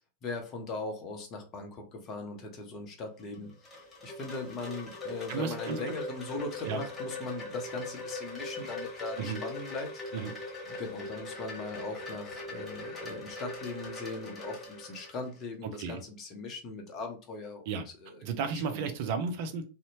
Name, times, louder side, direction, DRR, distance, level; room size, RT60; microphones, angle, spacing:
voice 1, 0.2-10.0 10.7-18.2 18.5-18.9, left 3 dB, 35° left, 4 dB, 0.7 m, -40 dB
Wind chime, 3.2-15.4, left 2 dB, 15° left, 1.2 m, -41 dB
voice 2, 5.3-5.8 6.7-6.8 9.2-9.4 10.1-10.3 15.6-16.0 17.7-17.8 18.2-19.6, right 5 dB, 50° right, 7 dB, 0.5 m, -33 dB
2.7 x 2.1 x 2.7 m, 0.35 s
figure-of-eight pair, 90°, 0 cm